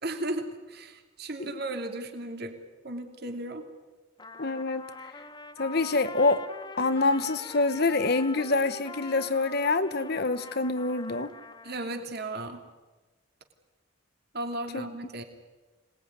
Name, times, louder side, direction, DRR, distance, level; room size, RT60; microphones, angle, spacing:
voice 1, 0.0-2.6 2.8-3.7 11.6-12.6 14.3-15.2, right 1 dB, 50° right, 5 dB, 2.7 m, -35 dB
Trumpet, 4.2-12.1, left 3 dB, 20° left, 1.1 m, -44 dB
voice 2, 4.4-4.9 5.6-6.4 6.8-11.3 14.7-14.8, left 3 dB, 50° left, 12 dB, 1.2 m, -26 dB
26.0 x 20.0 x 9.6 m, 1.2 s
head